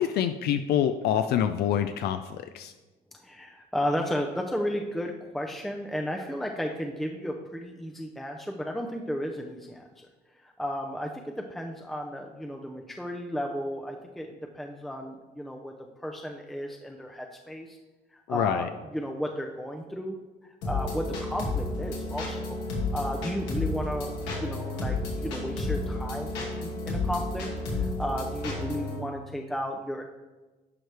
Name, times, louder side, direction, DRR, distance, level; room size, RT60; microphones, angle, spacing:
voice 1, 0.0-2.7 18.3-18.7, left 10 dB, 70° left, 9 dB, 0.4 m, -26 dB
voice 2, 3.2-10.1 10.4-15.7 16.0-17.8 18.1-20.2 20.4-26.3 26.6-27.5 27.7-30.0, equal, ahead, 2 dB, 0.5 m, -34 dB
sound 1, 20.6-29.0, left 2 dB, 90° left, 2.0 m, -31 dB
10.5 x 4.7 x 3.4 m, 1.2 s
cardioid pair, 110°, 17 cm